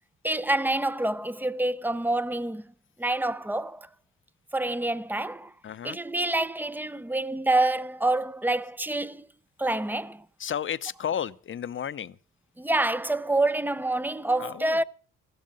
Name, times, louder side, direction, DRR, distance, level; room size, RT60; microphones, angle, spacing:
voice 1, 0.2-2.6 3.0-3.9 4.5-5.5 5.8-9.3 9.6-10.2 12.6-14.8, right 2 dB, 5° right, 0.6 m, -27 dB
voice 2, 5.6-6.0 10.4-12.2 14.4-14.8, left 9 dB, 40° left, 0.7 m, -32 dB
15.0 x 13.5 x 5.3 m
cardioid pair, 90°, 30 cm